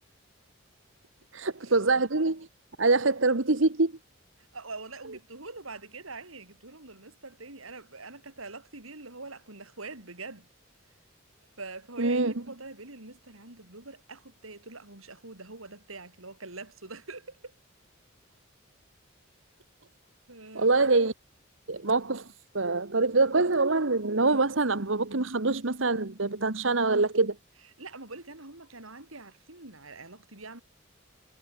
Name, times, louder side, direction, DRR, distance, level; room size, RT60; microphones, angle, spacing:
voice 1, 1.3-2.5 2.8-3.9 12.0-12.3 20.5-21.1 21.7-22.3 22.5-27.3, right 3 dB, 65° right, 1.5 m, -25 dB
voice 2, 4.5-10.5 11.6-17.5 20.3-20.7 27.8-30.6, right 3 dB, 85° right, 5.3 m, -44 dB
head